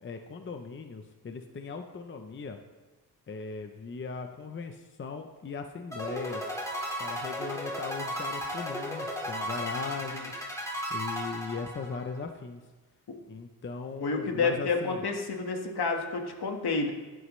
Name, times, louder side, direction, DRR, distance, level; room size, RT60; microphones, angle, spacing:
voice 1, 0.0-2.6 3.3-6.4 7.0-10.4 10.9-12.6 13.3-15.0, left 4 dB, 30° left, 6 dB, 0.6 m, -38 dB
sound 1, 5.9-12.2, equal, 10° left, 2.1 m, -35 dB
voice 2, 14.0-16.9, left 4 dB, 75° left, 3 dB, 1.6 m, -29 dB
15.0 x 11.5 x 3.2 m, 1.3 s
wide cardioid pair, 180°, 39 cm